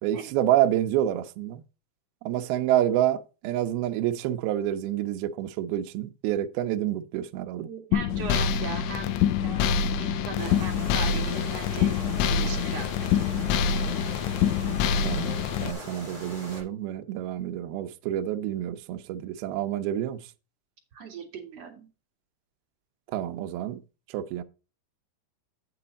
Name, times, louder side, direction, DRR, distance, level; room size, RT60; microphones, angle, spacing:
voice 1, 0.0-1.6 2.2-7.7 15.0-20.3 23.1-23.8 24.1-24.4, right 12 dB, 80° right, 2.2 m, -28 dB
voice 2, 7.6-12.0 12.3-12.9 20.9-21.9, right 5 dB, 45° right, 2.5 m, -39 dB
sound 1, 7.9-15.7, left 7 dB, 85° left, 3.0 m, -25 dB
sound 2, 10.4-16.6, left 1 dB, 15° left, 6.6 m, -41 dB
8.5 x 7.9 x 4.1 m
omnidirectional pair, 5.3 m